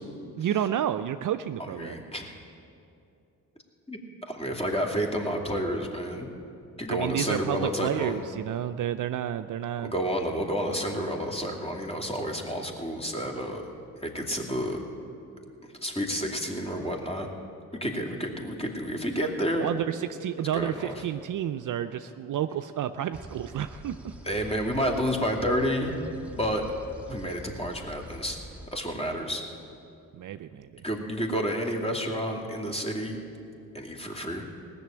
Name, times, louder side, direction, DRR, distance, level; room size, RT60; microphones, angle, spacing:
voice 1, 0.4-2.0 6.9-9.9 19.6-24.1 30.1-30.8, right 10 dB, 50° right, 10 dB, 0.5 m, -30 dB
voice 2, 1.7-2.3 3.9-6.3 6.8-8.2 9.8-13.6 13.9-14.8 15.6-17.3 17.8-19.7 20.5-21.0 24.2-25.9 26.3-26.6 27.1-28.4 28.7-29.4 30.8-33.2 33.7-34.4, equal, 15° left, 1 dB, 2.6 m, -30 dB
sound 1, 23.1-28.7, right 1 dB, 5° right, 1.7 m, -45 dB
18.5 x 6.9 x 8.8 m, 2.6 s
hypercardioid pair, 45°, 40 cm